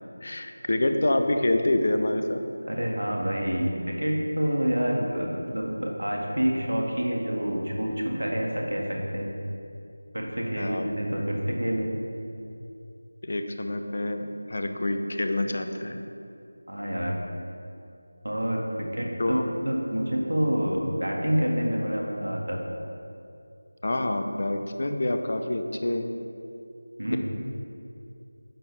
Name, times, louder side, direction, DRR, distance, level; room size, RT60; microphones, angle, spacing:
voice 1, 0.2-2.4 10.6-11.0 13.2-16.0 19.2-19.4 23.8-26.1, left 1 dB, 50° left, 6 dB, 0.7 m, -27 dB
voice 2, 2.7-9.3 10.1-11.9 16.7-17.2 18.2-19.4 19.6-22.6 27.0-27.2, equal, 85° right, -1 dB, 1.8 m, -27 dB
9.9 x 7.2 x 3.3 m, 2.6 s
figure-of-eight pair, 170°, 0 cm